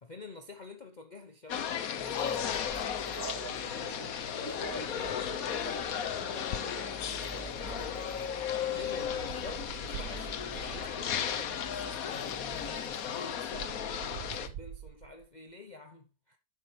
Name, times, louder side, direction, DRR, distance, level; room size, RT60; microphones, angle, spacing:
voice 1, 0.0-3.2 8.7-16.4, left 3 dB, 35° left, 0.9 m, -48 dB
sound 1, 1.5-14.5, left 8 dB, 75° left, 1.4 m, -35 dB
sound 2, 2.0-13.9, right 2 dB, 50° right, 3.2 m, -49 dB
voice 2, 3.2-8.0, right 2 dB, 35° right, 4.0 m, -46 dB
sound 3, 8.7-11.3 12.3-12.4 12.6-15.3, right 10 dB, 80° right, 1.2 m, -46 dB
10.5 x 8.4 x 3.3 m
omnidirectional pair, 1.5 m